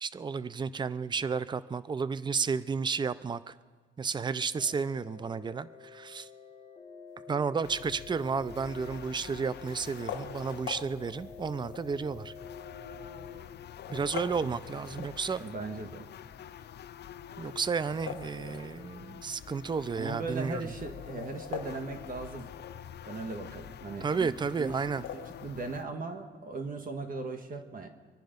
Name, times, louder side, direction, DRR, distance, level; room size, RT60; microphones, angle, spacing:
voice 1, 0.0-3.5 4.0-6.3 7.3-12.3 13.9-15.4 17.4-20.7 24.0-25.0, right 5 dB, 20° right, 16 dB, 0.5 m, -32 dB
sound 1, 4.6-13.3, left 5 dB, 30° left, 2.0 m, -49 dB
sound 2, 7.6-25.8, left 9 dB, 60° left, 0.7 m, -47 dB
sound 3, 9.9-11.9 12.6-12.7 13.6-15.5 17.7-19.1 19.4-19.5 19.7-19.8 20.7-22.9 24.8-25.5, left 8 dB, 80° left, 1.3 m, -43 dB
voice 2, 15.4-16.0 20.0-22.5 23.0-24.8 25.4-27.9, right 3 dB, 45° right, 5 dB, 1.5 m, -38 dB
25.0 x 10.5 x 5.2 m, 1.5 s
cardioid pair, 90°, 20 cm